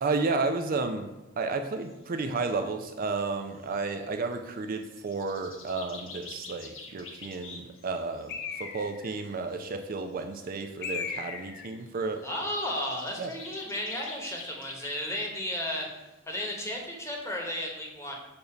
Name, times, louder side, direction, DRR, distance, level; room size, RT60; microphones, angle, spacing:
voice 1, 0.0-8.3 8.6-12.3 13.2-13.3, right 3 dB, 45° right, 6 dB, 0.4 m, -32 dB
sound 1, 1.8-2.5 2.8-2.9 3.2-3.3 3.5-4.5 4.8-8.6 9.1-11.1 11.4-16.0 16.3-16.4 16.6-16.9, left 3 dB, 80° left, 1.0 m, -48 dB
Bird, 8.3-9.1 10.8-11.7, left 5 dB, 55° left, 0.6 m, -36 dB
voice 2, 12.2-15.9 16.3-18.1, left 1 dB, 15° left, 0 dB, 1.1 m, -34 dB
6.8 x 2.7 x 5.7 m, 1.0 s
head